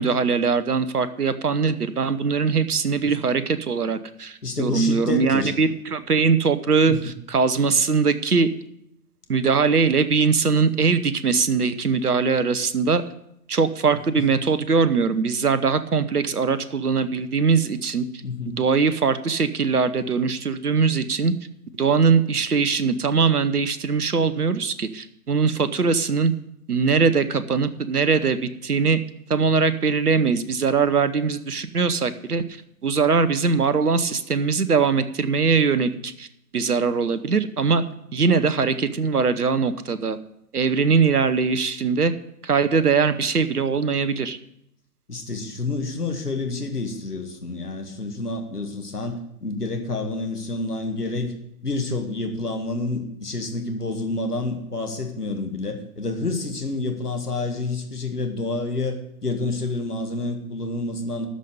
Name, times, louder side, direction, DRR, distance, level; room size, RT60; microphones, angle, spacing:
voice 1, 0.0-8.5 9.3-13.0 13.5-18.1 18.5-21.3 21.7-26.3 26.7-29.0 29.3-32.4 32.8-36.3 36.5-37.8 38.1-40.2 40.5-42.1 42.4-44.4, right 5 dB, 80° right, 13 dB, 1.0 m, -21 dB
voice 2, 4.4-5.5 6.8-7.0 14.1-14.2 18.2-18.6 45.1-51.3 51.6-61.3, left 3 dB, 85° left, 4 dB, 1.8 m, -28 dB
13.0 x 5.5 x 7.8 m, 0.76 s
figure-of-eight pair, 125°, 45 cm